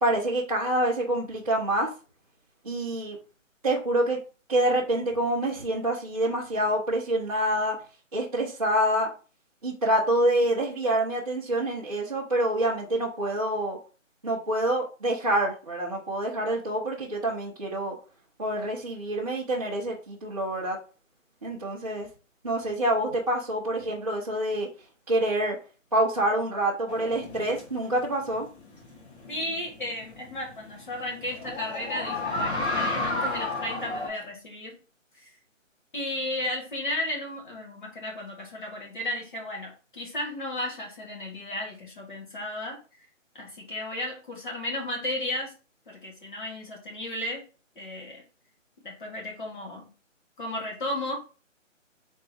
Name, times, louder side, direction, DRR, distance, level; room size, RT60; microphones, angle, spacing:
voice 1, 0.0-1.9 2.6-3.2 3.6-4.2 4.5-7.8 8.1-9.1 9.6-13.8 14.2-18.0 18.4-20.8 21.4-22.1 22.4-24.7 25.1-25.6 25.9-28.5, right 1 dB, 30° right, -7 dB, 0.8 m, -26 dB
sound 1, 26.9-34.1, left 2 dB, 55° left, 1.8 m, -32 dB
voice 2, 29.3-34.8 35.1-35.3 35.9-42.8 43.3-45.5 45.9-47.4 47.7-48.2 48.8-49.9 50.4-51.1, left 1 dB, 40° left, -1 dB, 1.5 m, -34 dB
4.1 x 3.5 x 3.4 m, 0.36 s
hypercardioid pair, 170°, 39 cm